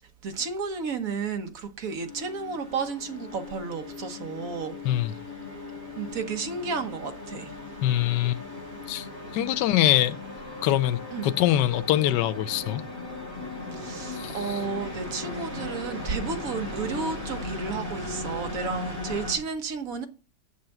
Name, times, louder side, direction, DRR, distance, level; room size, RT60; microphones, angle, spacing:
voice 1, 0.2-4.7 6.0-7.5 9.4-9.6 11.1-11.3 13.7-20.1, right 5 dB, 55° right, 1.5 m, -32 dB
sound 1, 2.0-19.4, left 2 dB, 30° right, 5.7 m, -37 dB
voice 2, 7.8-8.4 8.9-9.1 9.3-10.2 10.6-12.8 14.1-14.6, left 13 dB, 75° left, 1.2 m, -24 dB
7.1 x 6.6 x 7.7 m
omnidirectional pair, 1.9 m